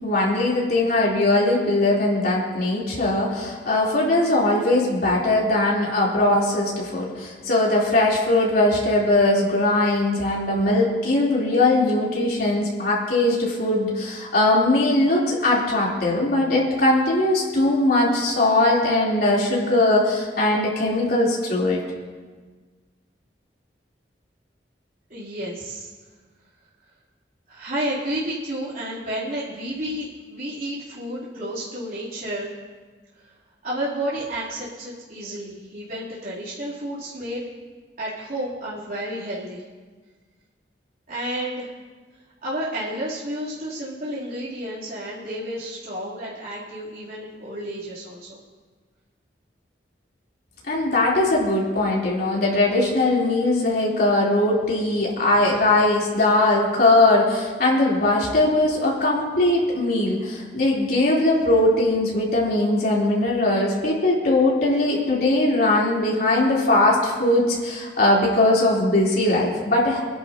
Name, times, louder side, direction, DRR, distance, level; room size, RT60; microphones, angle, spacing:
voice 1, 0.0-21.8 50.7-70.0, left 2 dB, 60° left, -5 dB, 3.7 m, -20 dB
voice 2, 25.1-25.9 27.5-32.5 33.6-37.4 38.0-39.6 41.1-41.7 42.4-48.4, right 1 dB, 50° right, -9 dB, 3.5 m, -31 dB
26.0 x 11.0 x 3.0 m, 1.4 s
head